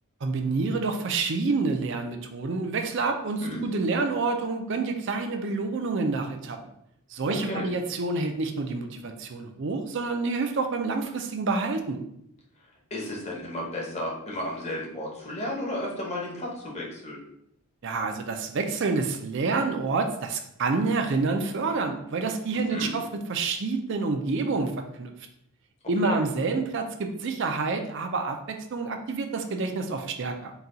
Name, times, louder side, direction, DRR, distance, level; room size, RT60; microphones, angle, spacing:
voice 1, 0.2-6.6 7.1-12.0 17.8-23.0 23.3-25.1 25.9-30.5, right 3 dB, 55° right, 5 dB, 0.4 m, -28 dB
voice 2, 12.9-17.2 22.5-22.9 26.0-26.2, left 1 dB, 30° left, -3 dB, 0.9 m, -33 dB
4.0 x 2.3 x 3.8 m, 0.75 s
head